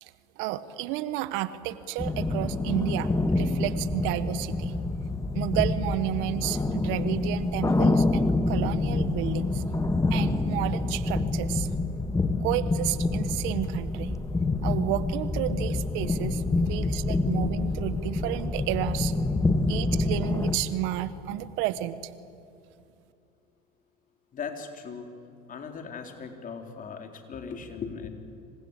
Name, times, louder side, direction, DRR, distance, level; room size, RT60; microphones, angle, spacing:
voice 1, 0.0-3.1 3.4-4.8 5.3-9.6 10.1-11.7 12.4-14.2 14.6-16.4 16.7-19.1 19.7-22.1, right 14 dB, 70° right, 14 dB, 1.3 m, -31 dB
sound 1, 2.0-20.6, left 2 dB, 15° left, 1.9 m, -27 dB
voice 2, 19.6-20.0 24.3-25.1 25.5-28.1, left 6 dB, 40° left, 4 dB, 4.0 m, -39 dB
27.0 x 25.0 x 8.4 m, 2.6 s
hypercardioid pair, 80°, 21 cm